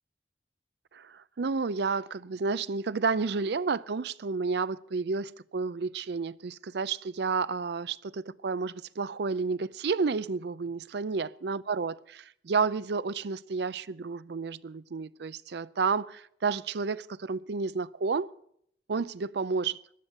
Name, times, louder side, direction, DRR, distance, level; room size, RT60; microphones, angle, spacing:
voice 1, 0.9-18.3 18.9-19.8, right 4 dB, 65° right, 0.5 m, -31 dB
17.0 x 11.0 x 6.6 m
head